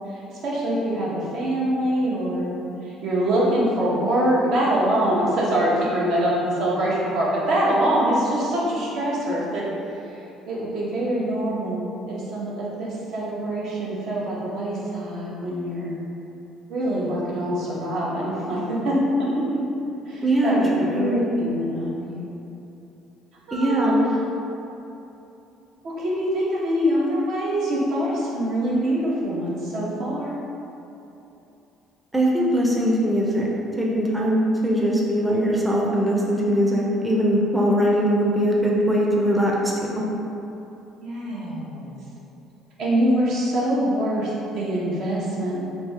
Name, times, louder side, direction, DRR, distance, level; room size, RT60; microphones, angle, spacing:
voice 1, 0.1-2.5 2.8-9.7 10.5-16.0 16.7-18.9 20.1-22.3 23.5-23.9 25.8-30.3 41.0-41.9 42.8-45.6, right 1 dB, 70° right, -6 dB, 0.9 m, -24 dB
voice 2, 20.2-21.2 23.5-23.9 32.1-33.5 33.8-40.0, equal, 5° right, -4 dB, 0.5 m, -21 dB
3.3 x 2.7 x 3.3 m, 2.9 s
cardioid pair, 110°, 0 cm